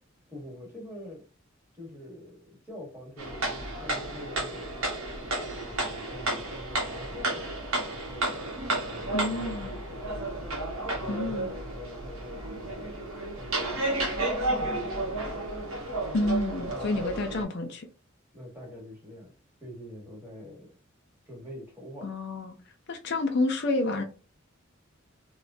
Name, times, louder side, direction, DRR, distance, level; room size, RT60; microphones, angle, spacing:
voice 1, 0.3-1.2 1.7-4.8 5.4-7.5 8.1-8.5 8.7-10.4 10.9-13.0 13.3-13.8 14.5-15.3 15.6-15.8 16.6-17.2 18.3-19.3 19.6-20.8 21.3-22.1, left 1 dB, 10° right, 1.2 m, -44 dB
sound 1, 3.2-17.4, right 2 dB, 90° right, 1.0 m, -32 dB
voice 2, 9.1-9.8 11.1-11.5 16.1-17.9 22.0-22.6 22.9-24.0, left 2 dB, 55° left, 0.4 m, -29 dB
3.0 x 2.1 x 2.5 m
head